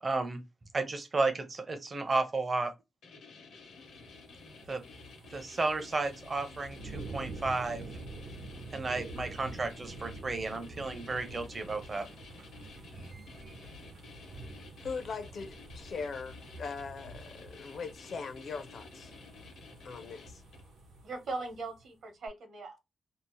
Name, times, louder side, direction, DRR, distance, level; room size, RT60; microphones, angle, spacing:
voice 1, 0.0-0.4 0.7-2.7 4.7-4.8 5.3-7.8 8.7-12.1, right 3 dB, 25° right, 0.5 m, -33 dB
sound 1, 3.0-20.8, left 4 dB, 85° left, 0.9 m, -53 dB
sound 2, 3.7-21.8 22.3-22.4, right 2 dB, 85° right, 0.9 m, -47 dB
voice 2, 14.8-19.1 19.8-20.4, left 5 dB, 50° left, 0.5 m, -40 dB
voice 3, 21.0-22.9, right 3 dB, 60° right, 0.9 m, -40 dB
2.7 x 2.0 x 3.0 m
wide cardioid pair, 175°, 0 cm